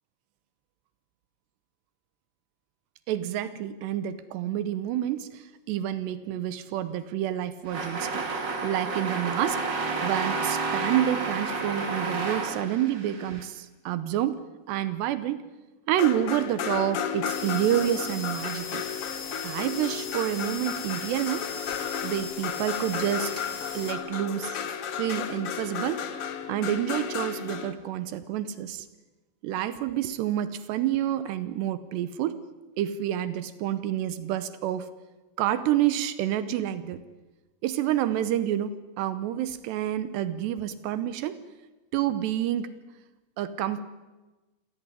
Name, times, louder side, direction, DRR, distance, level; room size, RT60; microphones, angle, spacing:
voice 1, 3.1-8.2 8.6-14.4 14.7-15.4 15.9-18.8 19.4-21.5 22.0-23.3 23.7-24.6 25.0-26.0 26.5-28.9 29.4-32.4 32.8-34.9 35.4-37.0 37.6-41.4 41.9-42.7 43.4-43.8, right 11 dB, 80° right, 14 dB, 3.0 m, -28 dB
sound 1, 7.7-13.4, right 4 dB, 35° right, 2.2 m, -30 dB
sound 2, 16.0-27.7, left 8 dB, 85° left, 1.2 m, -33 dB
sound 3, 17.3-23.9, left 5 dB, 40° left, 2.0 m, -39 dB
26.0 x 17.0 x 9.7 m, 1.2 s
omnidirectional pair, 5.0 m